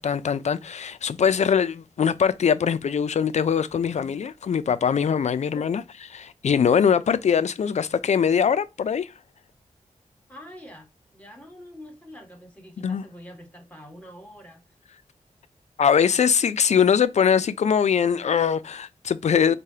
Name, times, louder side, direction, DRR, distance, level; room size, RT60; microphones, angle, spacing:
voice 1, 0.0-5.8 6.1-9.1 12.8-13.0 15.8-19.5, left 7 dB, 60° left, 0.4 m, -22 dB
voice 2, 5.4-5.7 10.3-10.9 11.1-14.6, equal, 10° left, 1.4 m, -45 dB
4.8 x 2.2 x 2.8 m
wide cardioid pair, 95°, 13 cm